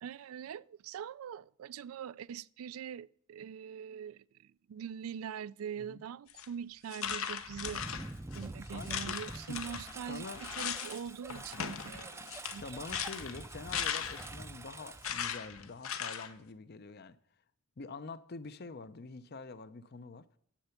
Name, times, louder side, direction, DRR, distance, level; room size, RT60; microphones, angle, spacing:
voice 1, 0.0-7.8 8.3-12.6, right 8 dB, 80° right, 0.3 m, -43 dB
sound 1, 6.3-6.5 6.9-8.4 8.8-11.0 11.3-14.4 15.0-16.3, left 8 dB, 75° left, 0.9 m, -38 dB
Engine, 7.1-15.8, right 2 dB, 10° right, 0.4 m, -46 dB
voice 2, 8.6-9.6 10.1-10.4 12.6-17.2 17.8-20.3, left 3 dB, 50° left, 0.6 m, -46 dB
10.0 x 7.9 x 5.8 m
head